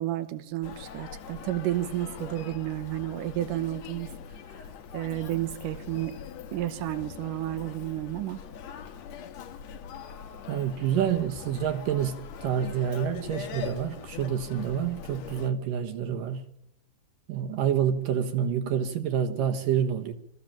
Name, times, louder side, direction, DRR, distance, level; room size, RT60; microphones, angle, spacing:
voice 1, 0.0-4.1 4.5-4.6 4.9-6.2 6.5-8.4, right 14 dB, 85° right, 11 dB, 1.9 m, -31 dB
Human voice, 0.6-15.5, left 7 dB, 70° left, 1.6 m, -42 dB
voice 2, 10.5-16.4 17.3-20.1, right 8 dB, 65° right, 6 dB, 2.4 m, -28 dB
23.5 x 15.0 x 7.4 m, 0.81 s
omnidirectional pair, 5.1 m